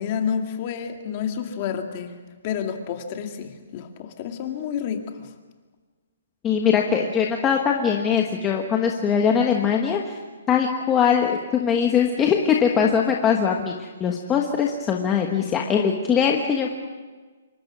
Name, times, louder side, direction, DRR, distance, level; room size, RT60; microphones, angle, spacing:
voice 1, 0.0-2.1 2.4-5.3, left 7 dB, 30° left, 4 dB, 2.2 m, -29 dB
voice 2, 6.4-10.2 10.5-16.8, left 7 dB, 10° left, 1 dB, 1.3 m, -21 dB
26.5 x 24.0 x 6.2 m, 1.4 s
hypercardioid pair, 170°, 0 cm